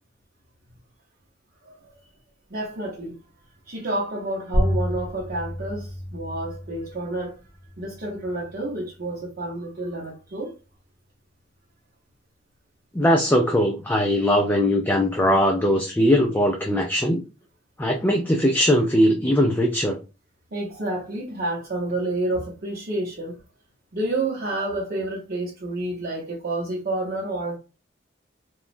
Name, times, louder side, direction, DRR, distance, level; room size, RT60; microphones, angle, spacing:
voice 1, 2.5-3.2 3.6-7.4 7.8-10.5 20.5-23.4 23.9-27.6, right 2 dB, 55° right, 0.7 m, -29 dB
sound 1, 4.5-9.6, equal, 75° left, 0.9 m, -30 dB
voice 2, 12.9-17.2 17.8-20.0, equal, 10° left, 0.3 m, -20 dB
3.0 x 2.2 x 2.5 m
head